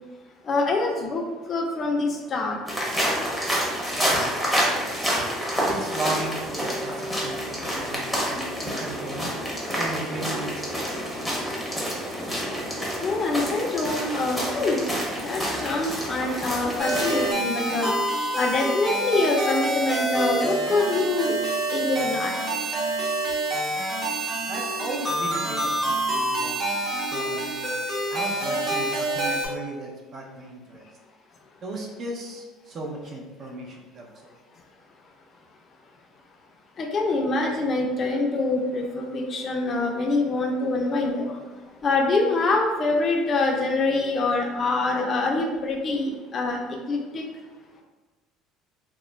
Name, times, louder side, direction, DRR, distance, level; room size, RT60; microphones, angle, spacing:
voice 1, 0.5-1.2 1.5-2.6 13.0-14.9 15.2-17.9 18.4-21.4 21.7-22.3 36.8-41.3 41.8-46.6 46.9-47.2, left 3 dB, 40° left, 1 dB, 0.4 m, -25 dB
sound 1, 2.7-17.3, equal, ahead, 0.7 m, -28 dB
voice 2, 4.0-4.8 5.5-9.3 9.7-10.9 24.5-26.7 27.1-27.8 28.1-30.9 31.6-34.4, right 2 dB, 45° right, -1 dB, 0.5 m, -36 dB
sound 2, 16.8-29.5, right 1 dB, 25° right, 1.0 m, -27 dB
2.3 x 2.0 x 3.1 m, 1.2 s
supercardioid pair, 100°, 0 cm